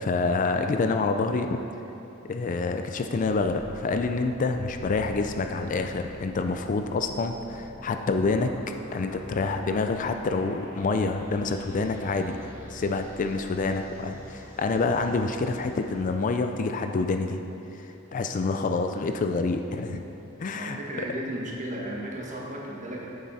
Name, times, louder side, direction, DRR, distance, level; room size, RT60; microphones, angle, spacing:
voice 1, 0.0-1.6 2.2-8.5 8.9-12.4 12.7-20.0 20.4-20.8, left 3 dB, 40° left, 6 dB, 0.4 m, -27 dB
sound 1, 3.1-16.3, left 1 dB, 10° right, 1.1 m, -46 dB
voice 2, 20.5-23.1, right 1 dB, 35° right, -2 dB, 1.3 m, -34 dB
8.7 x 7.5 x 4.1 m, 2.9 s
head